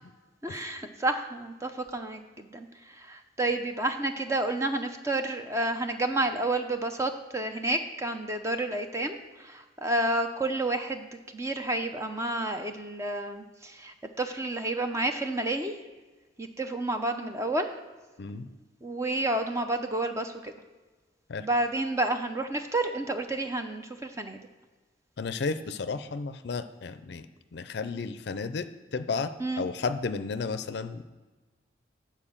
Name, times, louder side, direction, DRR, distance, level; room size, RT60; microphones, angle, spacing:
voice 1, 0.4-15.8 16.4-17.7 18.8-20.5 21.4-24.4 29.4-29.6, right 2 dB, 15° right, 6 dB, 0.5 m, -30 dB
voice 2, 25.2-27.3 27.5-29.3 29.6-31.0, left 4 dB, 55° left, 11 dB, 0.4 m, -33 dB
8.9 x 4.5 x 7.2 m, 1.3 s
head